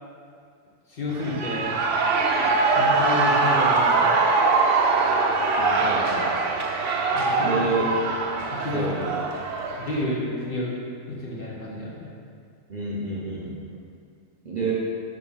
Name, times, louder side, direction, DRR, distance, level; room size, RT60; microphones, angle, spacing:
voice 1, 0.9-1.7 2.7-4.2 7.1-7.6 8.5-8.9 9.8-10.8 11.1-12.1, left 2 dB, 50° left, -4 dB, 1.0 m, -30 dB
Shout / Cheering, 1.1-10.0, right 3 dB, 70° right, 0.9 m, -22 dB
voice 2, 5.6-6.3 7.4-8.0 8.7-9.1 12.7-13.6 14.4-14.7, right 3 dB, 40° right, -6 dB, 0.7 m, -28 dB
4.7 x 3.7 x 5.5 m, 2.3 s
omnidirectional pair, 1.4 m